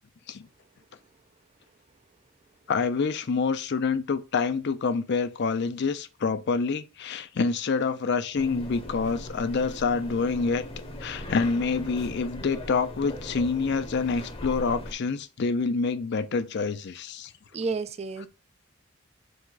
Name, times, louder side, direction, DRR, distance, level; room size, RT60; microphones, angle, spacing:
voice 1, 2.7-10.6 11.0-17.3, left 4 dB, 60° left, 0.5 m, -27 dB
sound 1, 8.3-14.9, left 1 dB, 30° left, 0.8 m, -39 dB
voice 2, 17.5-18.3, right 4 dB, 30° right, 0.4 m, -30 dB
4.8 x 2.2 x 3.9 m
head